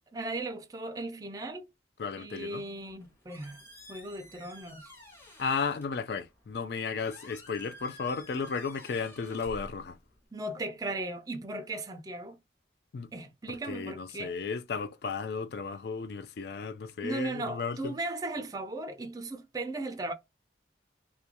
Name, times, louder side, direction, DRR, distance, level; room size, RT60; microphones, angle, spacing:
voice 1, 0.1-1.7 2.2-3.6 3.9-4.9 10.3-12.4 13.1-14.4 17.0-20.1, right 2 dB, 20° right, 0.4 m, -37 dB
voice 2, 2.0-2.6 5.4-10.0 12.9-13.1 13.7-17.9, left 5 dB, 65° left, 0.4 m, -34 dB
Squeak, 2.8-10.3, equal, 15° left, 0.7 m, -52 dB
2.4 x 2.2 x 2.7 m
head